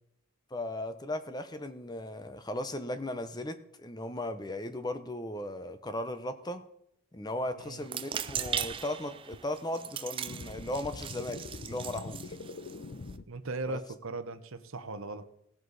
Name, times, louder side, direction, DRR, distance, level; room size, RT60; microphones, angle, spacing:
voice 1, 0.5-6.6 7.1-12.4 13.7-13.8, left 1 dB, 20° left, 10 dB, 0.7 m, -37 dB
sound 1, 7.8-13.2, right 8 dB, 25° right, 0.3 m, -39 dB
sound 2, 8.3-8.8 9.3-9.4 10.3-13.2, left 3 dB, 45° left, 0.5 m, -43 dB
voice 2, 13.3-15.2, right 2 dB, 65° right, 9 dB, 0.9 m, -38 dB
17.5 x 7.7 x 4.1 m, 0.76 s
head